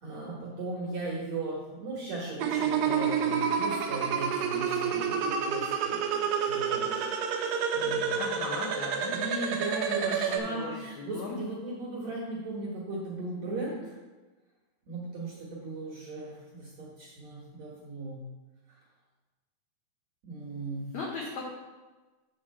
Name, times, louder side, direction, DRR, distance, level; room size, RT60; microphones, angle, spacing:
voice 1, 0.0-8.2 9.1-13.9 14.8-18.2 20.2-20.9, right 2 dB, 55° right, -5 dB, 2.1 m, -37 dB
sound 1, 2.4-10.4, right 7 dB, 80° right, 2.1 m, -29 dB
voice 2, 8.2-9.2 10.0-11.4 20.9-21.4, left 3 dB, 75° left, -3 dB, 1.7 m, -38 dB
7.3 x 7.2 x 4.2 m, 1.2 s
omnidirectional pair, 4.8 m